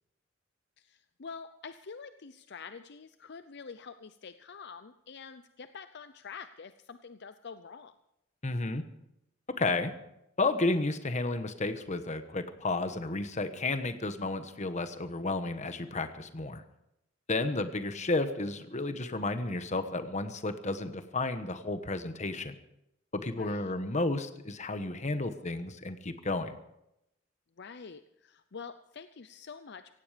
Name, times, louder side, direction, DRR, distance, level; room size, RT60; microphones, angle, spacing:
voice 1, 0.8-7.9 23.4-23.7 27.6-29.9, left 5 dB, 60° left, 11 dB, 0.6 m, -46 dB
voice 2, 8.4-8.9 9.5-9.9 10.4-16.6 17.3-22.5 23.1-26.6, left 2 dB, 35° left, 10 dB, 1.2 m, -32 dB
17.0 x 16.5 x 5.1 m, 0.85 s
head